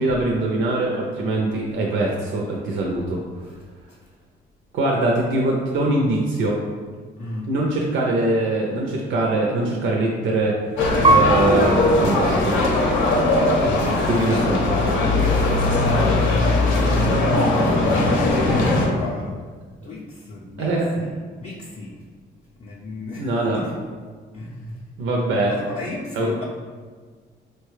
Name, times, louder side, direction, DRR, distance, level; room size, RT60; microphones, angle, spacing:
voice 1, 0.0-3.2 4.7-6.6 7.5-10.6 11.0-12.6 13.6-14.6 20.6-20.9 23.2-23.6 25.0-25.6 26.2-26.3, right 2 dB, 75° right, -1 dB, 0.5 m, -22 dB
voice 2, 7.2-7.5 13.7-17.1 17.5-19.4 19.8-22.0 22.6-23.7 24.3-24.8 25.3-26.4, left 1 dB, 35° left, -3 dB, 0.4 m, -33 dB
sound 1, 10.8-18.9, left 2 dB, 80° left, 0.7 m, -19 dB
Piano, 11.0-13.8 14.4-15.1, right 2 dB, 25° right, 0.4 m, -24 dB
4.1 x 2.2 x 3.1 m, 1.6 s
cardioid pair, 90°, 20 cm